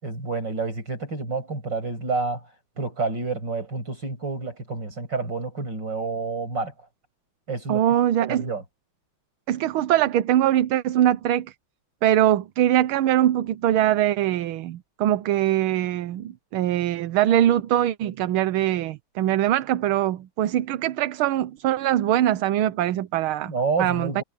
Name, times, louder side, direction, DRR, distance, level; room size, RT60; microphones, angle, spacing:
voice 1, 0.0-2.4 2.8-6.7 7.5-7.9 8.3-8.6 23.5-24.2, right 4 dB, 55° right, 8.1 m, -29 dB
voice 2, 7.7-8.4 9.5-11.5 12.0-23.5 23.8-24.2, right 12 dB, 80° right, 1.6 m, -22 dB
omnidirectional pair, 2.3 m